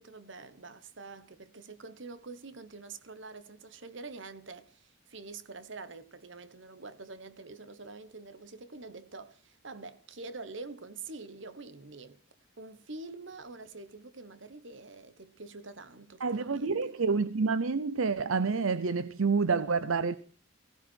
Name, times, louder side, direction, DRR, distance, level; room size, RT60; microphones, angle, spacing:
voice 1, 0.0-12.2 12.6-16.9, right 3 dB, 65° right, 1.3 m, -46 dB
voice 2, 16.2-20.2, right 4 dB, 85° right, 0.7 m, -28 dB
17.5 x 17.5 x 4.6 m
head